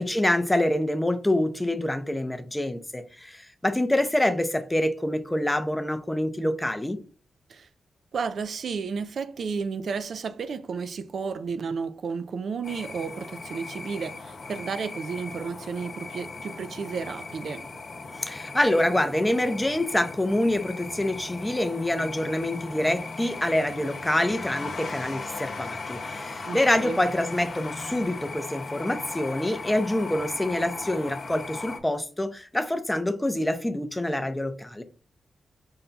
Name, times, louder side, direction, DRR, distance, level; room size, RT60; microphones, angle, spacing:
voice 1, 0.0-7.0 18.1-34.8, left 1 dB, 10° left, 0.5 m, -26 dB
voice 2, 8.1-17.7 26.4-27.0, right 5 dB, 65° right, 0.4 m, -32 dB
sound 1, 12.6-31.8, left 3 dB, 55° left, 0.8 m, -38 dB
5.5 x 2.2 x 3.9 m
wide cardioid pair, 115°, 0 cm